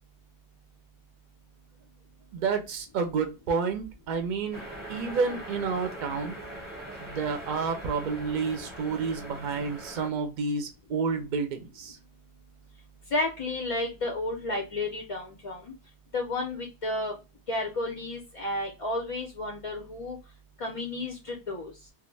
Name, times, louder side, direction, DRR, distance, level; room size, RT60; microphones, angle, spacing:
voice 1, 2.3-4.6 4.9-6.4 7.0-12.0, right 5 dB, 55° right, 6 dB, 0.6 m, -30 dB
sound 1, 4.5-10.1, right 1 dB, 10° right, 0.8 m, -41 dB
voice 2, 13.1-15.7 16.1-17.1 17.5-20.2 20.6-21.7, left 2 dB, 50° left, 0 dB, 0.4 m, -32 dB
2.4 x 2.0 x 3.1 m, 0.27 s
omnidirectional pair, 1.1 m